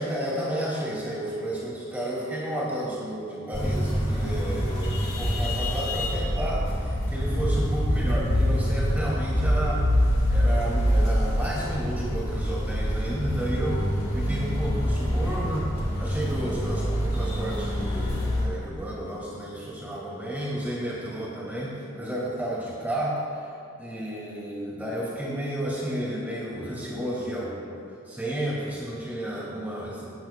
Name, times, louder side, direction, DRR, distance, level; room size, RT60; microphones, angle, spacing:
voice 1, 0.0-9.8 10.3-13.9 14.1-15.7 16.0-23.2 23.8-30.1, right 1 dB, 10° right, -6 dB, 2.6 m, -32 dB
sound 1, 3.5-18.5, equal, 30° left, 2.2 m, -25 dB
17.0 x 10.0 x 2.4 m, 2.4 s
head